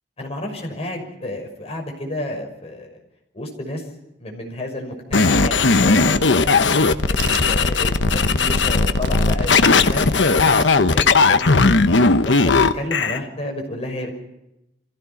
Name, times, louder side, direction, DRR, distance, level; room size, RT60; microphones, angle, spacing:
voice 1, 0.2-3.0 3.3-3.8 4.2-6.6 7.1-10.3 10.9-14.1, left 1 dB, 35° left, 1 dB, 6.0 m, -31 dB
sound 1, 5.1-13.2, left 4 dB, 85° left, 1.1 m, -17 dB
Crack, 6.0-11.3, right 2 dB, 85° right, 1.4 m, -35 dB
27.0 x 16.0 x 7.1 m, 0.89 s
head